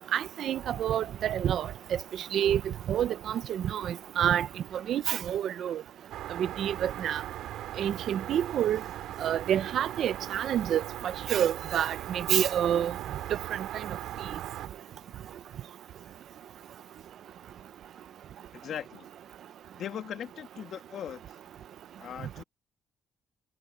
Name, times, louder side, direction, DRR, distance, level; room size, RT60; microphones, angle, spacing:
voice 1, 0.1-1.7 2.3-2.6 2.9-4.5 4.9-5.8 6.4-7.2 7.8-8.8 9.2-10.8 11.3-12.9, right 10 dB, 70° right, 0.9 m, -28 dB
streetlight roadnoise, 6.1-14.7, right 13 dB, 90° right, 2.7 m, -39 dB
voice 2, 18.5-19.1 19.8-21.2 22.0-22.4, left 9 dB, 70° left, 1.6 m, -39 dB
cardioid pair, 90°, 0 cm